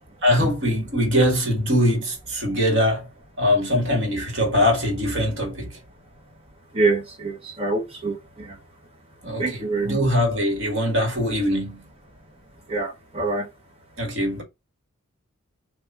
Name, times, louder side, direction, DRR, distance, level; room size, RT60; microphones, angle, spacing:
voice 1, 0.2-3.1 3.4-5.8 9.2-11.8 14.0-14.4, equal, 55° right, 1.7 m, -22 dB
voice 2, 6.7-8.6 9.4-10.0 12.7-13.5, right 3 dB, 25° right, 1.2 m, -25 dB
3.5 x 2.9 x 4.6 m
head